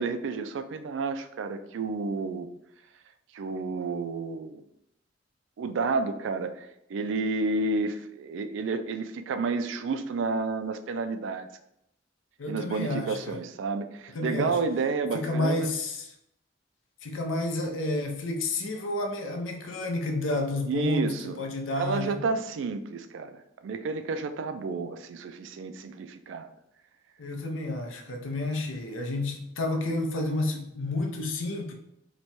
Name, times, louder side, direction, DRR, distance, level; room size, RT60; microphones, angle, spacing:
voice 1, 0.0-2.5 3.3-4.6 5.6-11.5 12.5-15.7 20.7-21.4 21.8-26.5, right 4 dB, 75° right, 9 dB, 0.3 m, -30 dB
voice 2, 12.4-13.4 14.1-14.6 15.1-16.1 17.0-22.2 27.2-31.7, left 2 dB, 85° left, 3 dB, 0.6 m, -30 dB
3.0 x 2.2 x 4.1 m, 0.79 s
head